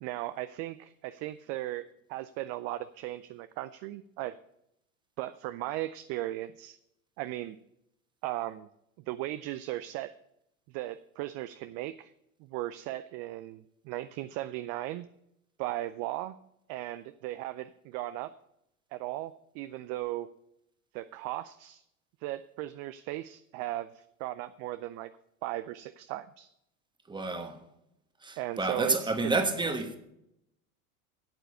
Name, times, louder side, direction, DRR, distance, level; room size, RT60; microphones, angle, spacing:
voice 1, 0.0-4.4 5.2-6.8 7.2-7.6 8.2-8.7 9.1-10.1 10.7-12.1 12.4-15.1 15.6-16.4 16.7-18.3 18.9-20.3 20.9-21.8 22.2-25.1 25.4-26.5 28.4-29.1, right 15 dB, 40° right, 0.4 m, -37 dB
voice 2, 27.1-27.6 28.2-30.0, right 3 dB, 10° right, 1.2 m, -30 dB
8.8 x 8.0 x 6.6 m
hypercardioid pair, 90°, 42 cm